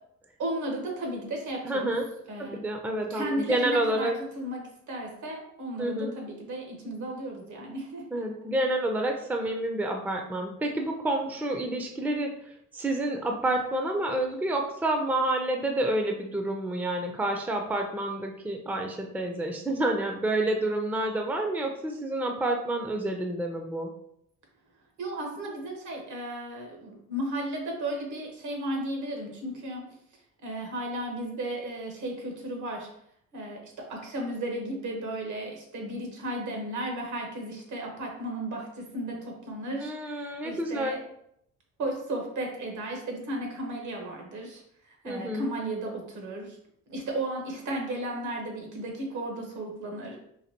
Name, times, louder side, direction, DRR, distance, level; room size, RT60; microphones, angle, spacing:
voice 1, 0.4-1.9 2.3-2.6 3.1-4.1 4.3-8.2 25.0-29.8 30.4-32.9 33.3-41.0 41.8-46.6 46.9-50.2, right 1 dB, 75° right, 1 dB, 1.3 m, -34 dB
voice 2, 1.6-2.1 2.4-4.2 5.8-6.1 8.1-12.3 12.7-23.9 39.8-41.0 45.0-45.5, right 1 dB, 5° right, 3 dB, 0.5 m, -29 dB
4.0 x 2.8 x 2.9 m, 0.73 s
cardioid pair, 90°, 30 cm